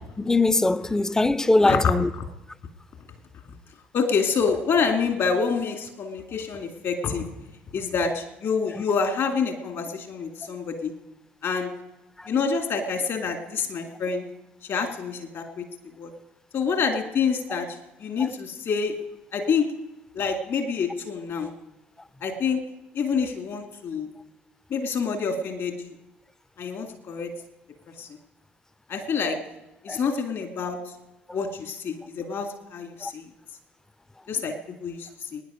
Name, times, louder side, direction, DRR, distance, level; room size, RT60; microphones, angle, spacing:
voice 1, 0.2-2.1 12.2-12.3 19.4-19.5 29.9-30.0 33.0-33.1, left 2 dB, 10° left, 0.5 m, -21 dB
voice 2, 1.6-1.9 3.9-7.3 7.7-10.9 11.4-11.7 12.3-14.2 14.7-15.6 16.0-16.1 16.5-17.7 18.0-19.0 19.3-19.7 20.1-21.5 22.2-22.6 22.9-24.1 24.7-25.9 26.6-27.3 28.0-28.1 28.9-29.4 29.8-30.8 31.3-33.3 34.3-35.4, left 5 dB, 50° left, 2.3 m, -27 dB
22.0 x 10.0 x 5.1 m
figure-of-eight pair, 55°, 6 cm